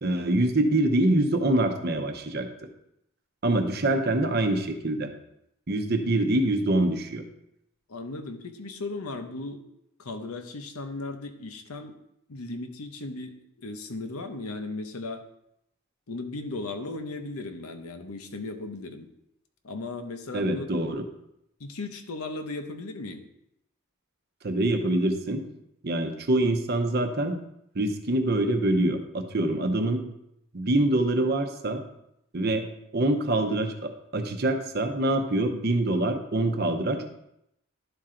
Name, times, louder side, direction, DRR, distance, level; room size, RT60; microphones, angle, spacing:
voice 1, 0.0-2.5 3.4-5.1 5.7-7.2 20.3-21.0 24.4-25.4 25.8-27.4 27.7-30.0 30.5-31.8 32.3-32.7 32.9-37.1, right 1 dB, 45° right, 6 dB, 0.8 m, -25 dB
voice 2, 7.9-9.6 10.0-12.0 12.3-15.2 16.1-19.1 19.6-20.7 21.6-23.2, left 2 dB, 90° left, 7 dB, 0.8 m, -36 dB
11.5 x 4.3 x 3.8 m, 0.80 s
head